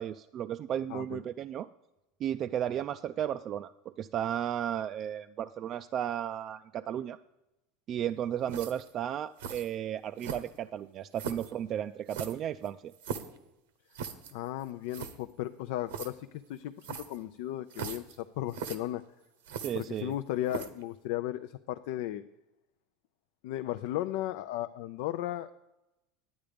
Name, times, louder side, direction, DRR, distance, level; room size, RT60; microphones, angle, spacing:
voice 1, 0.0-1.7 2.2-3.7 4.0-7.2 7.9-12.9 19.6-20.1, right 10 dB, 40° right, 9 dB, 0.3 m, -34 dB
sound 1, 8.5-8.9 9.4-9.7 10.2-10.7 11.2-11.5 12.1-13.4 13.9-14.3 14.6-14.7 14.9-15.2 15.9-16.1 16.8-17.2 17.7-18.2 18.5-18.8 19.4-20.1 20.5-20.8, right 7 dB, 85° right, 1.0 m, -39 dB
voice 2, 14.3-19.0 19.7-22.2 23.4-25.5, left 14 dB, 70° left, 9 dB, 0.4 m, -35 dB
10.5 x 8.7 x 5.1 m, 0.94 s
supercardioid pair, 115°, 0 cm